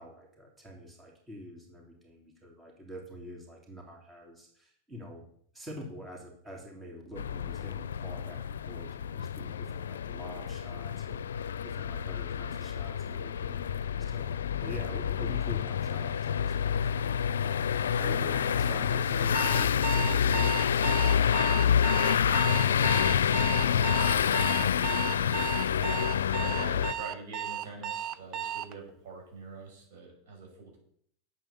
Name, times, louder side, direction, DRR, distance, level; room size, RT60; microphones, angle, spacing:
voice 1, 0.0-5.3 5.5-8.4 8.7-20.6, left 1 dB, 15° right, 0 dB, 3.2 m, -45 dB
sound 1, 7.2-26.9, left 8 dB, 90° left, 0.4 m, -28 dB
Alarm, 19.3-28.7, right 10 dB, 45° right, 0.7 m, -35 dB
voice 2, 21.8-25.2 25.8-30.8, right 3 dB, 75° right, 0 dB, 5.9 m, -46 dB
9.0 x 8.3 x 7.1 m, 0.64 s
hypercardioid pair, 100°, 0 cm